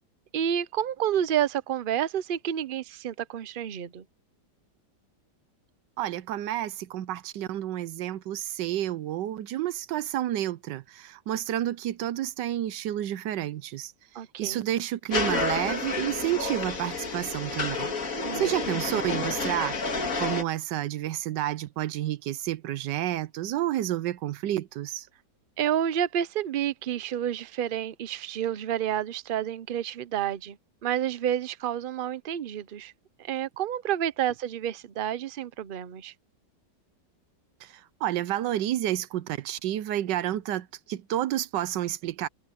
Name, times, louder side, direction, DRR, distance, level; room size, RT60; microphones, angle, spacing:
voice 1, 0.3-4.0 14.1-14.6 18.2-18.4 25.6-30.6 30.8-32.9 33.2-36.1, right 10 dB, 60° right, 0.5 m, -29 dB
voice 2, 6.0-13.9 14.4-17.9 18.4-19.8 20.2-25.1 37.6-42.3, right 13 dB, 85° right, 1.3 m, -30 dB
sound 1, 15.1-20.4, left 4 dB, 50° left, 2.5 m, -30 dB
omnidirectional pair, 1.8 m